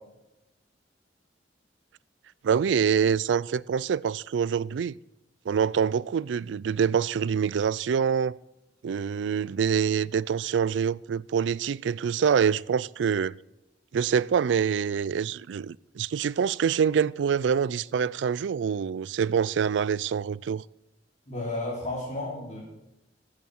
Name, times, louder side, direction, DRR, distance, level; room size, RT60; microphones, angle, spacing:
voice 1, 2.4-4.9 5.5-8.4 8.8-13.3 13.9-20.6, right 7 dB, 75° right, 0.4 m, -25 dB
voice 2, 21.3-22.6, left 2 dB, 40° left, 3.6 m, -32 dB
14.0 x 8.3 x 6.4 m
head